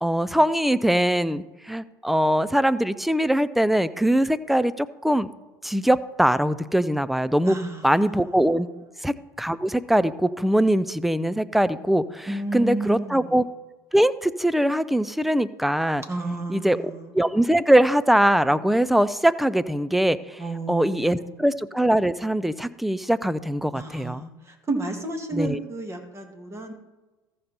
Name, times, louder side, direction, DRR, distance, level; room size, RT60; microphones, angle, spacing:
voice 1, 0.0-5.3 5.6-7.6 7.8-8.7 9.0-13.4 13.9-16.0 16.5-16.8 17.1-20.4 20.7-24.3 25.3-25.6, right 1 dB, ahead, 14 dB, 0.5 m, -22 dB
voice 2, 7.4-8.2 12.3-13.4 16.1-17.2 20.4-21.5 23.7-26.7, right 2 dB, 20° right, 3 dB, 2.1 m, -32 dB
14.5 x 5.4 x 4.4 m, 1.2 s
hypercardioid pair, 75°, 12 cm